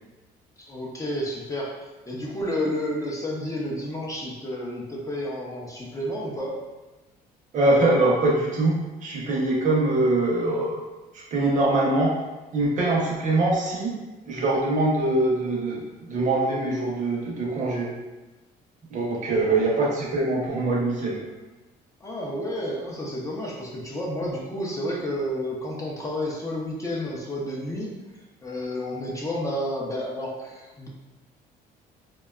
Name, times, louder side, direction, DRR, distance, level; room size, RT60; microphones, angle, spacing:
voice 1, 0.6-6.6 22.0-27.9 28.4-30.9, left 1 dB, 20° left, -4 dB, 0.5 m, -31 dB
voice 2, 7.5-10.8 11.1-12.2 12.5-13.9 14.2-17.9 18.9-21.3, right 2 dB, 50° right, -3 dB, 0.7 m, -23 dB
2.7 x 2.2 x 2.3 m, 1.1 s
cardioid pair, 110°, 17 cm